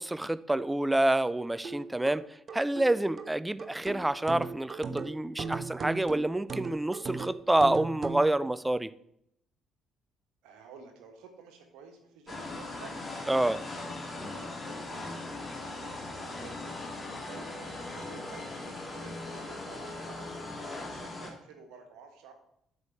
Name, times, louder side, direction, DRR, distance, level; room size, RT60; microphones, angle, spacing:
voice 1, 0.0-2.2 2.5-8.9 13.3-13.6, right 1 dB, 10° right, 0.4 m, -27 dB
sound 1, 1.6-8.3, right 4 dB, 40° right, 0.7 m, -38 dB
voice 2, 10.4-13.1 13.3-16.8 17.3-22.3, right 5 dB, 60° right, 1.5 m, -52 dB
sound 2, 12.3-21.3, left 2 dB, 25° left, 2.0 m, -39 dB
8.1 x 4.9 x 6.7 m
figure-of-eight pair, 45°, 0 cm